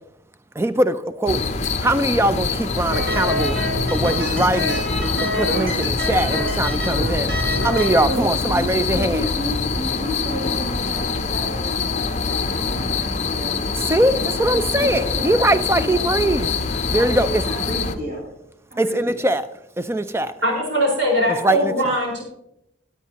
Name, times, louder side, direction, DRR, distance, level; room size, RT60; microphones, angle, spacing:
voice 1, 0.6-1.5 1.8-3.6 3.9-4.8 5.3-9.3 13.9-16.5 16.9-17.4 18.8-19.5 19.8-20.3 21.4-21.7, right 1 dB, 15° right, 12 dB, 0.4 m, -21 dB
sound 1, 1.3-17.9, left 4 dB, 35° left, 0.6 m, -24 dB
sound 2, 2.9-8.1, equal, 90° right, 3.4 m, -26 dB
voice 2, 8.1-13.7 14.0-16.1 16.9-18.3 18.7-19.2, equal, 50° right, -6 dB, 2.8 m, -32 dB
voice 3, 20.4-22.2, equal, 70° right, -3 dB, 4.7 m, -21 dB
17.5 x 8.2 x 2.9 m, 0.81 s
head